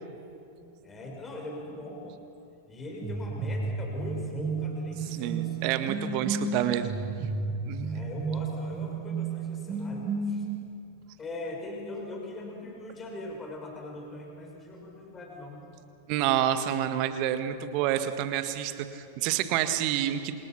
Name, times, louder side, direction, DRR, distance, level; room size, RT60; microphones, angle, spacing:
voice 1, 0.6-2.2 2.7-5.6 7.8-10.5 11.2-15.6, left 2 dB, 20° left, 0 dB, 5.4 m, -41 dB
sound 1, 3.0-10.6, right 4 dB, 20° right, 2.0 m, -32 dB
voice 2, 5.1-6.9 7.6-7.9 16.1-20.4, right 11 dB, 45° right, 9 dB, 1.8 m, -28 dB
29.0 x 27.5 x 6.0 m, 2.7 s
figure-of-eight pair, 90°, 0 cm